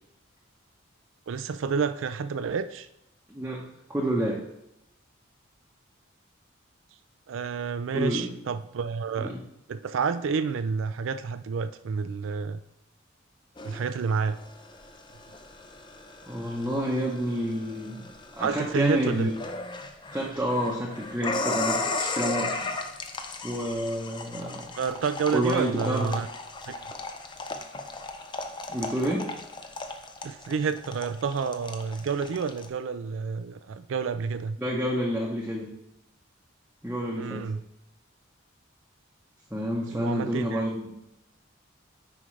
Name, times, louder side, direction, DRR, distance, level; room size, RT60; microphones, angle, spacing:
voice 1, 1.3-2.9 7.3-9.3 9.7-12.6 13.6-14.4 18.4-19.3 24.8-26.3 26.7-26.8 30.2-34.6 37.2-37.6 39.9-40.6, right 5 dB, 75° right, 12 dB, 0.4 m, -29 dB
voice 2, 3.3-3.6 3.9-4.4 7.9-8.3 9.2-9.4 16.2-18.0 18.3-19.3 20.1-22.7 23.4-24.7 25.3-26.1 28.7-29.3 34.6-35.7 36.8-37.5 39.5-40.9, equal, 10° right, -5 dB, 0.9 m, -29 dB
sound 1, 13.6-32.7, left 3 dB, 25° left, 0.5 m, -36 dB
9.3 x 4.9 x 3.2 m, 0.84 s
head